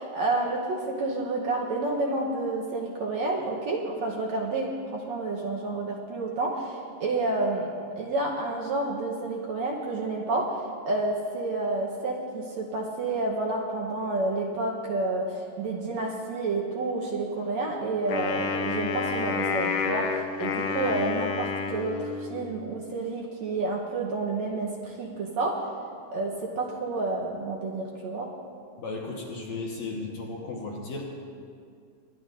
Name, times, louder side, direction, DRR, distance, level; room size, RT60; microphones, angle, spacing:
voice 1, 0.0-7.7 8.0-10.5 10.9-25.6 26.1-28.3, right 2 dB, 70° right, -2 dB, 1.9 m, -29 dB
Wind instrument woodwind instrument, 18.1-22.5, left 5 dB, 80° left, 2.2 m, -29 dB
voice 2, 28.8-31.0, left 3 dB, 60° left, -2 dB, 2.1 m, -35 dB
23.0 x 11.5 x 2.6 m, 2.3 s
omnidirectional pair, 4.0 m